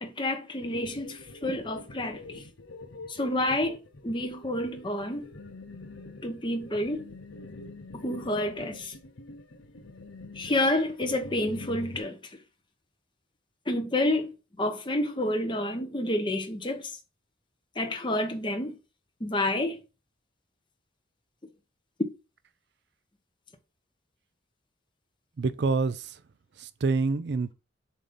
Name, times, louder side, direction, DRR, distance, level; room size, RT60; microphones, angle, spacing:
voice 1, 0.0-2.4 3.1-5.3 6.2-7.1 8.0-8.9 10.4-12.2 13.7-14.3 14.6-16.9 17.8-18.7 19.2-19.8, left 1 dB, 25° left, 1.0 m, -29 dB
sound 1, 0.6-12.0, left 2 dB, 85° left, 0.8 m, -45 dB
voice 2, 25.4-26.2 26.6-27.5, right 4 dB, 60° right, 0.4 m, -27 dB
7.1 x 2.8 x 5.2 m
head